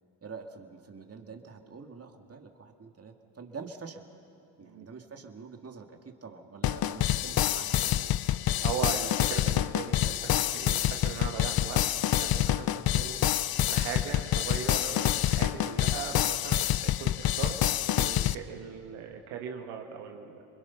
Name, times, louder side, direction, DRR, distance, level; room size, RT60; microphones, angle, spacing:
voice 1, 0.2-4.0 4.6-8.1, right 5 dB, 30° right, 3 dB, 2.2 m, -46 dB
sound 1, 6.6-18.3, left 12 dB, 50° left, 0.7 m, -27 dB
voice 2, 8.6-11.9 12.2-13.2 13.7-17.6 17.9-20.4, right 7 dB, 85° right, 3 dB, 2.0 m, -39 dB
28.0 x 21.5 x 5.9 m, 2.6 s
supercardioid pair, 70°, 48 cm